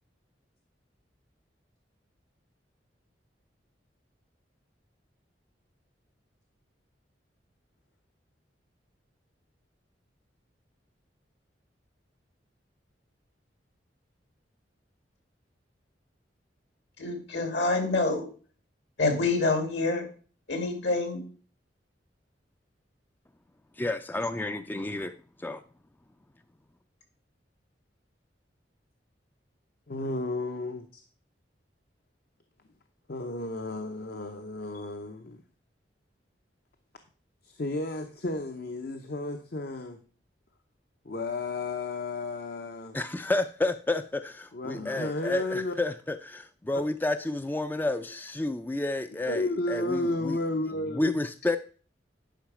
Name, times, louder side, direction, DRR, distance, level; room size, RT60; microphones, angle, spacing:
voice 1, 17.0-18.2 19.0-20.1 20.5-21.2, left 3 dB, 75° left, 2.6 m, -27 dB
voice 2, 23.8-25.6 42.9-50.4 50.9-51.6, left 2 dB, 10° left, 0.4 m, -30 dB
voice 3, 29.9-31.0 33.1-35.4 37.4-40.0 41.0-43.0 44.5-45.7 49.3-51.2, left 2 dB, 60° left, 0.8 m, -33 dB
10.5 x 5.6 x 4.9 m
head